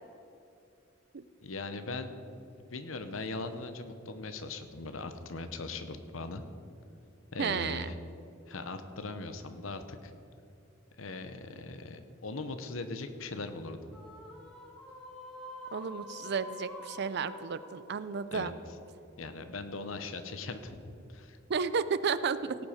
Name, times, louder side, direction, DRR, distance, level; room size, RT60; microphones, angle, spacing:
voice 1, 1.4-2.1 2.7-6.4 7.3-7.9 8.5-10.1 11.0-13.8 18.3-18.5 19.2-21.4, left 3 dB, 85° left, 9 dB, 0.9 m, -40 dB
voice 2, 7.4-7.9 15.7-18.6 21.5-22.6, right 5 dB, 55° right, 14 dB, 0.5 m, -32 dB
sound 1, 13.9-19.4, left 1 dB, ahead, 1.6 m, -48 dB
17.5 x 7.2 x 5.0 m, 2.6 s
head